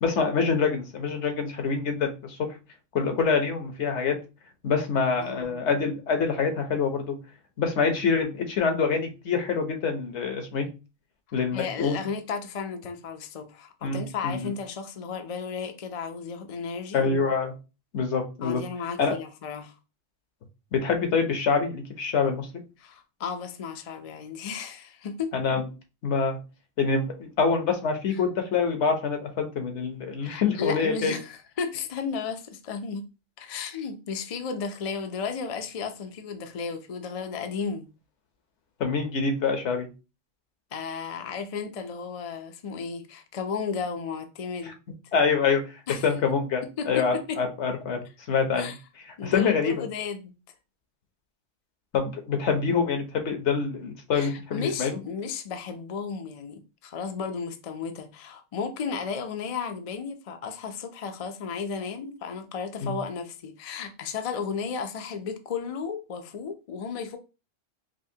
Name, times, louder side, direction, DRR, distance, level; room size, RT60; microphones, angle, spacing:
voice 1, 0.0-2.5 2.9-4.2 4.6-7.2 7.6-10.7 11.3-12.0 13.8-14.5 16.9-17.5 17.9-18.6 19.0-19.2 20.7-22.5 25.3-25.7 26.0-26.4 26.8-31.2 38.8-39.9 44.6-44.7 45.1-45.6 45.9-48.7 49.2-49.8 51.9-55.0 62.8-63.0, left 5 dB, 70° left, 1.1 m, -26 dB
voice 2, 5.2-5.6 11.5-17.0 18.4-19.7 22.8-25.3 30.2-33.1 33.4-37.9 40.7-44.8 45.9-46.1 46.8-47.4 48.6-48.8 49.2-50.3 54.1-67.2, left 5 dB, 55° left, 0.4 m, -34 dB
5.1 x 2.1 x 2.7 m
omnidirectional pair, 1.2 m